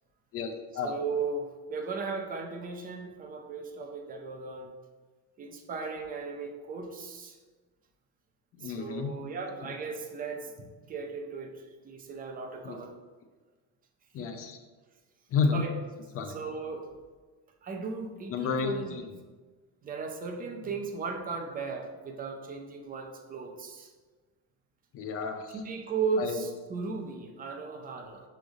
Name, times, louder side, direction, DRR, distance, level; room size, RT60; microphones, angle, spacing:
voice 1, 0.3-1.0 8.6-9.1 9.6-9.7 12.6-12.9 14.1-14.6 15.3-15.6 16.1-16.4 18.3-19.2 24.9-25.6 26.2-26.4, left 5 dB, 30° left, 6 dB, 0.6 m, -31 dB
voice 2, 0.8-4.7 5.4-7.4 8.6-12.9 14.2-14.3 15.5-15.7 16.3-16.9 17.6-19.0 19.8-23.9 25.6-28.2, right 4 dB, 20° right, 2 dB, 0.6 m, -36 dB
5.9 x 3.4 x 5.2 m, 1.3 s
cardioid pair, 155°, 45 cm